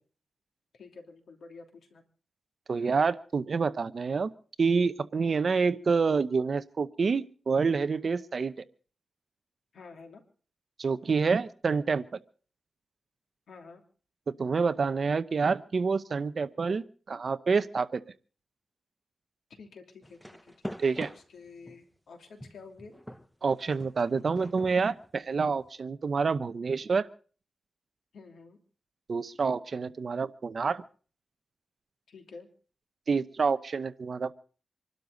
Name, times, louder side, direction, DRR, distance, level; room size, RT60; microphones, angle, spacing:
voice 1, 0.7-2.0 9.7-10.2 13.5-13.8 19.5-20.5 21.0-23.0 28.1-28.6 32.1-32.5, left 4 dB, 90° left, 4 dB, 2.8 m, -49 dB
voice 2, 2.7-4.3 4.6-8.5 10.8-12.1 14.4-18.0 20.8-21.1 23.4-27.1 29.1-30.8 33.1-34.3, right 5 dB, 55° right, 13 dB, 0.8 m, -27 dB
sound 1, 20.0-21.9 22.4-25.7, equal, 5° left, 0.7 m, -44 dB
26.5 x 12.5 x 3.9 m, 0.41 s
wide cardioid pair, 105°, 0 cm